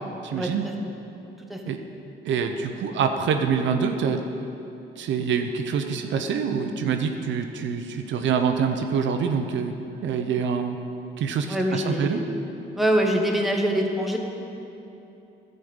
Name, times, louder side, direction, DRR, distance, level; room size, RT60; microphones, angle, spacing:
voice 1, 0.2-0.6 1.7-1.8 2.2-4.2 5.0-9.7 10.0-10.8 11.2-12.2, right 6 dB, 70° right, 6 dB, 0.7 m, -25 dB
voice 2, 11.5-12.2 12.8-14.2, equal, ahead, 0 dB, 1.3 m, -24 dB
11.5 x 5.3 x 7.9 m, 2.9 s
cardioid pair, 90°, 20 cm